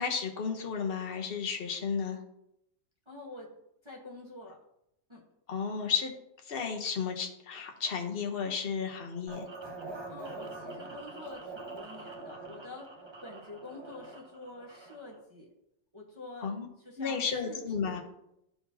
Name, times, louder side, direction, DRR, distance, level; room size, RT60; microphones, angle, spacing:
voice 1, 0.0-2.2 5.5-6.1 6.5-9.5 16.4-16.7 17.0-18.0, left 6 dB, 40° left, 2 dB, 0.9 m, -33 dB
voice 2, 3.1-3.5 3.8-4.6 5.1-5.2 10.1-12.9 13.2-15.5 15.9-16.6 16.8-18.0, left 2 dB, 20° right, -4 dB, 1.1 m, -47 dB
sound 1, 9.3-15.2, right 3 dB, 45° right, 0.3 m, -44 dB
12.0 x 4.3 x 2.8 m, 0.81 s
omnidirectional pair, 1.9 m